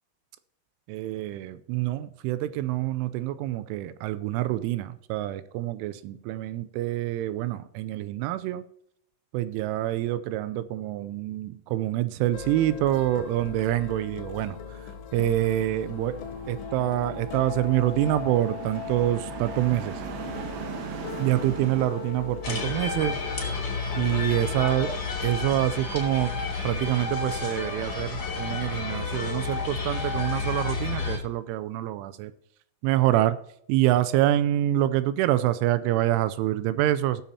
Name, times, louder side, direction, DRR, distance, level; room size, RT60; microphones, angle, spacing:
voice 1, 0.9-8.6 9.3-16.2 16.5-20.0 21.2-23.2 24.0-26.4 26.6-32.3 32.8-33.4 33.7-37.2, right 14 dB, 85° right, 2.8 m, -26 dB
sound 1, 12.3-29.1, left 7 dB, 75° left, 2.9 m, -40 dB
sound 2, 15.6-23.0, right 6 dB, 70° right, 2.5 m, -40 dB
sound 3, 22.4-31.2, left 4 dB, 35° left, 1.6 m, -31 dB
19.0 x 7.1 x 2.8 m
omnidirectional pair, 5.9 m